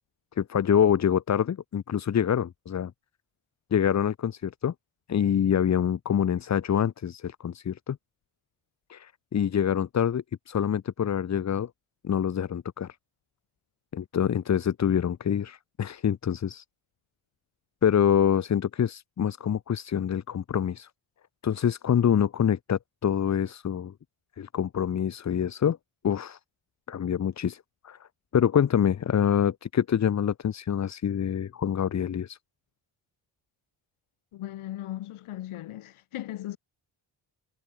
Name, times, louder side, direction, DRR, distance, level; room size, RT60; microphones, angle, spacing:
voice 1, 0.4-2.9 3.7-4.7 5.1-8.0 8.9-11.7 12.0-13.0 13.9-16.6 17.8-20.9 21.4-23.9 24.4-25.8 26.0-26.4 26.9-28.0 28.3-32.4, left 8 dB, 35° left, 0.7 m, -26 dB
voice 2, 34.3-36.6, left 14 dB, 90° left, 2.3 m, -37 dB
cardioid pair, 60°, 49 cm